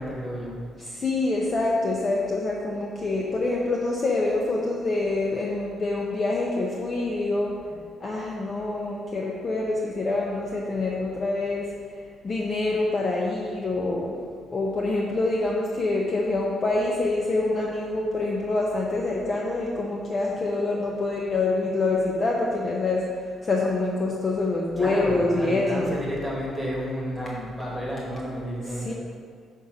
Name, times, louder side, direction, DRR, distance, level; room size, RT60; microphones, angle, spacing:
voice 1, 0.0-0.6 24.8-28.9, equal, ahead, -5 dB, 1.5 m, -31 dB
voice 2, 0.8-11.7 12.2-14.2 14.5-26.0 28.7-28.9, left 2 dB, 30° left, -2 dB, 0.6 m, -26 dB
6.3 x 4.1 x 5.0 m, 2.1 s
cardioid pair, 135°, 0 cm